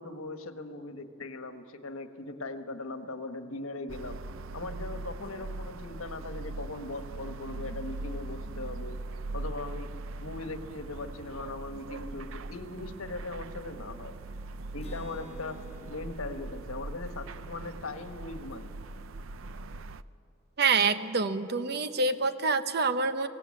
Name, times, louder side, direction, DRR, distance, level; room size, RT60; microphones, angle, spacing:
voice 1, 0.0-4.2 4.5-9.0 9.3-9.9 10.2-14.1 14.7-15.6 15.8-18.8, left 2 dB, 90° left, 7 dB, 1.4 m, -39 dB
sound 1, 3.9-20.0, right 2 dB, 70° right, 0.5 m, -41 dB
Acoustic guitar, 14.8-18.5, left 2 dB, 30° left, 4.2 m, -51 dB
voice 2, 20.6-23.3, right 4 dB, 50° right, 10 dB, 0.9 m, -26 dB
23.5 x 17.5 x 8.5 m, 2.7 s
head